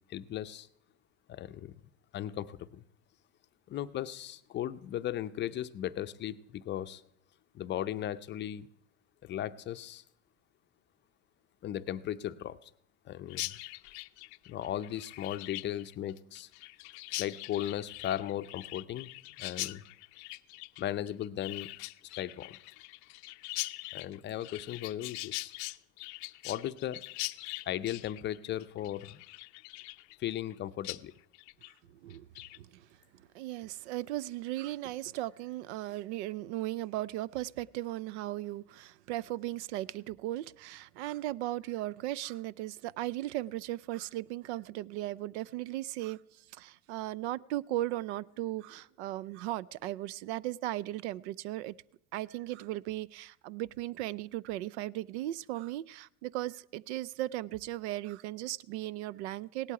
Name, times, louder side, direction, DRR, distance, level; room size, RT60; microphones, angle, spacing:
voice 1, 0.1-0.7 1.3-1.7 2.1-2.8 3.7-7.0 7.5-8.7 9.2-10.0 11.6-12.7 13.1-13.5 14.5-16.5 17.2-19.1 19.4-19.8 20.8-21.7 22.2-22.6 23.9-25.5 26.4-27.0 27.7-29.2 30.2-31.1, left 11 dB, 35° left, 0.5 m, -36 dB
Chirp tweet, 13.3-30.6 30.8-31.0 31.3-31.7 32.1-32.6, left 23 dB, 80° left, 0.5 m, -42 dB
voice 2, 32.6-32.9 33.1-51.8 52.1-59.7, right 15 dB, 85° right, 0.5 m, -37 dB
17.0 x 11.5 x 4.7 m
supercardioid pair, 115°, 33 cm